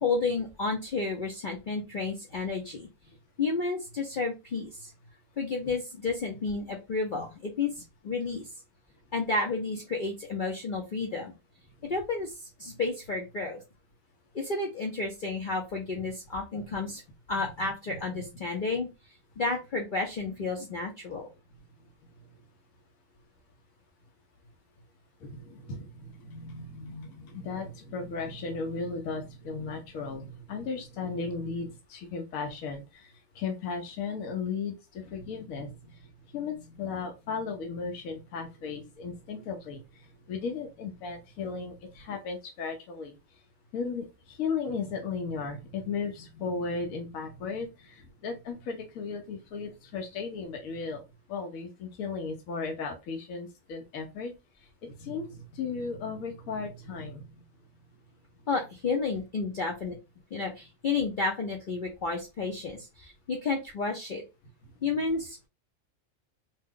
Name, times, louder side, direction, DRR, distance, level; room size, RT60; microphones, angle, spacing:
voice 1, 0.0-2.9 3.4-4.9 5.4-8.5 9.1-11.3 11.8-13.6 14.3-17.0 17.3-18.9 19.4-21.3 58.5-60.0 60.3-64.2 64.8-65.5, left 3 dB, 55° left, 0 dB, 0.6 m, -31 dB
voice 2, 17.3-18.3 25.2-35.9 36.3-39.8 40.3-43.1 43.7-51.0 51.3-54.3 54.8-57.4, left 4 dB, 85° left, 3 dB, 1.1 m, -36 dB
2.9 x 2.1 x 3.5 m, 0.26 s
omnidirectional pair, 1.4 m